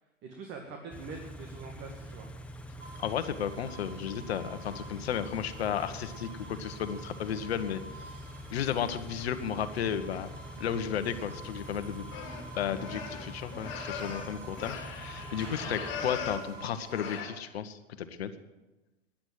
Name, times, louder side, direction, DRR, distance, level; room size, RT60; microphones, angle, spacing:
voice 1, 0.2-2.3, right 4 dB, 30° right, 2 dB, 2.0 m, -44 dB
Car / Idling, 0.9-16.4, equal, 5° left, 1.0 m, -45 dB
sound 1, 2.8-17.2, right 4 dB, 75° right, 2.4 m, -49 dB
voice 2, 3.0-7.8 8.5-10.3 10.6-12.0 12.6-18.3, left 8 dB, 55° left, 11 dB, 1.4 m, -33 dB
sound 2, 12.1-16.5 16.9-17.3, left 6 dB, 30° left, 3.0 m, -39 dB
15.5 x 10.5 x 7.7 m, 1.1 s
figure-of-eight pair, 110°, 37 cm